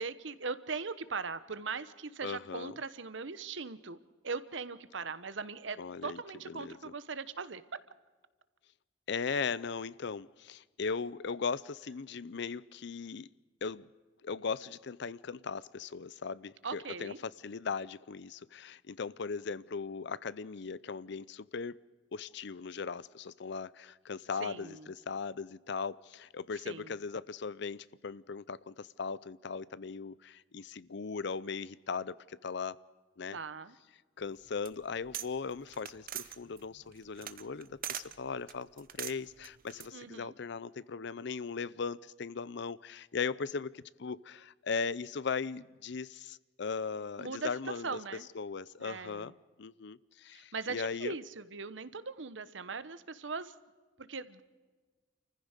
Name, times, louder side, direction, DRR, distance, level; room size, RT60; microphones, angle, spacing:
voice 1, 0.0-4.0 4.2-7.6 16.6-17.2 24.4-24.9 26.5-26.9 33.3-33.8 39.9-40.3 47.2-48.3 48.8-49.3 50.3-53.5 54.0-54.4, right 4 dB, 75° right, 1.1 m, -40 dB
voice 2, 2.2-2.8 5.8-6.2 6.5-6.9 9.1-13.3 13.6-13.9 14.2-21.8 22.1-32.8 33.2-33.4 34.2-49.3 49.6-51.2, left 5 dB, 65° left, 0.6 m, -38 dB
sound 1, 34.3-35.3 35.6-38.1 38.5-39.9, right 11 dB, 50° right, 0.9 m, -42 dB
28.5 x 15.0 x 6.6 m
head